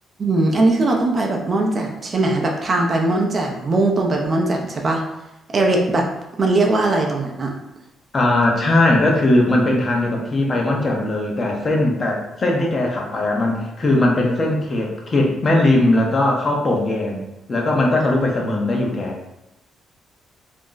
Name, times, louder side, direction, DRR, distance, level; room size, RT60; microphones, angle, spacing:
voice 1, 0.2-5.0 5.5-6.1 6.4-7.5, right 2 dB, 40° right, 1 dB, 0.5 m, -20 dB
voice 2, 8.1-17.2 17.5-19.2, left 2 dB, 35° left, 0 dB, 0.7 m, -19 dB
2.5 x 2.1 x 3.8 m, 0.91 s
cardioid pair, 90°, 0 cm